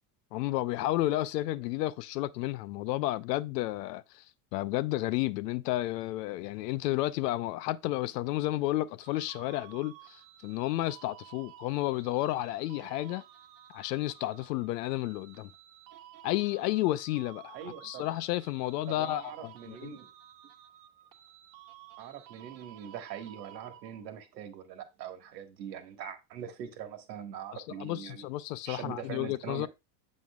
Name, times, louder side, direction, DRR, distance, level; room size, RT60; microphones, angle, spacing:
voice 1, 0.3-4.2 4.5-13.2 13.7-15.5 16.2-17.6 17.8-19.9 27.5-29.7, left 16 dB, 75° left, 0.6 m, -32 dB
sound 1, 9.0-24.2, right 12 dB, 55° right, 1.2 m, -54 dB
voice 2, 17.5-18.0 18.9-20.1 22.0-28.2 28.6-29.7, right 9 dB, 80° right, 1.6 m, -42 dB
7.5 x 6.2 x 2.3 m
supercardioid pair, 105°, 49 cm